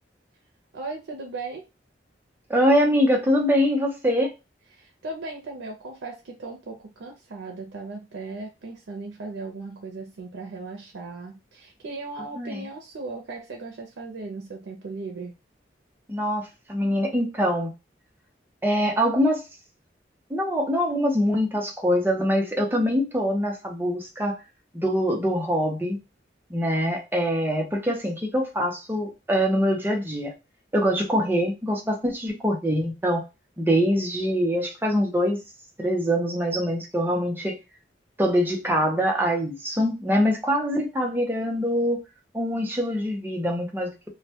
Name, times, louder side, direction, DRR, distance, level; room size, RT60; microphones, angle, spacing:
voice 1, 0.7-1.6 4.7-15.3, right 3 dB, 90° right, 2 dB, 0.5 m, -37 dB
voice 2, 2.5-4.3 12.4-12.6 16.1-17.7 18.6-19.4 20.3-24.4 24.7-26.0 26.5-30.3 30.7-33.2 33.6-35.4 35.8-37.6 38.2-42.0 42.3-44.1, equal, 10° right, 1 dB, 0.5 m, -24 dB
2.1 x 2.1 x 2.7 m, 0.26 s
head